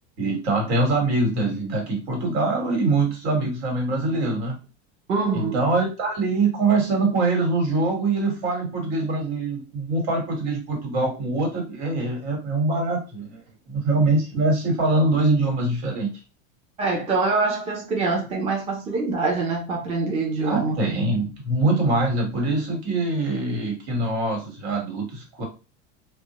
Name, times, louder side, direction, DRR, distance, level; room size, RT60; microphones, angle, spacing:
voice 1, 0.2-4.6 5.3-13.4 13.7-16.1 20.4-25.4, right 2 dB, 80° right, 1.4 m, -23 dB
voice 2, 5.1-5.6 16.8-20.8, right 3 dB, 20° right, 0.5 m, -24 dB
2.1 x 2.1 x 2.9 m
supercardioid pair, 155°, 32 cm